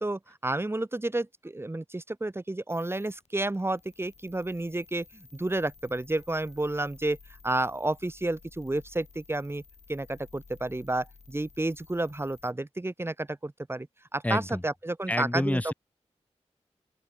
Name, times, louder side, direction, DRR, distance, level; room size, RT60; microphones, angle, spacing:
voice 1, 0.0-7.2 7.4-9.6 9.9-13.9 14.1-15.6, right 2 dB, 20° right, 1.0 m, -31 dB
sound 1, 2.7-12.5, left 5 dB, 75° left, 3.2 m, -55 dB
voice 2, 14.2-14.6 15.1-15.7, left 1 dB, 10° left, 0.8 m, -28 dB
open air
wide cardioid pair, 70°, 12 cm